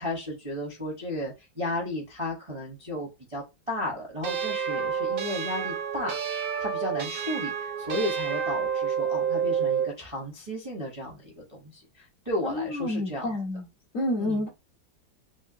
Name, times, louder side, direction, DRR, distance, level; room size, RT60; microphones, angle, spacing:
voice 1, 0.0-13.4 14.2-14.5, left 1 dB, 30° right, 0.6 m, -34 dB
sound 1, 4.2-9.9, right 7 dB, 85° right, 1.6 m, -29 dB
voice 2, 12.4-13.6 13.9-14.5, left 1 dB, 55° left, 0.9 m, -29 dB
3.6 x 2.2 x 2.6 m
omnidirectional pair, 2.2 m